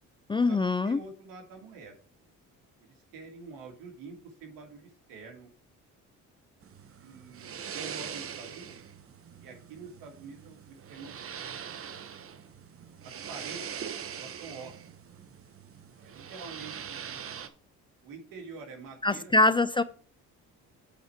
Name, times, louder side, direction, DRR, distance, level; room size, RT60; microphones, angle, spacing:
voice 1, 0.3-1.0 19.0-19.8, left 2 dB, 15° left, 0.3 m, -24 dB
voice 2, 0.8-2.3 2.8-5.5 7.0-8.8 9.4-11.5 13.0-13.8 14.1-14.9 16.0-17.2 18.0-19.3, right 4 dB, 80° right, 2.1 m, -47 dB
sound 1, 6.6-17.5, right 8 dB, 45° right, 0.9 m, -42 dB
8.2 x 4.4 x 4.6 m
cardioid pair, 85°, 33 cm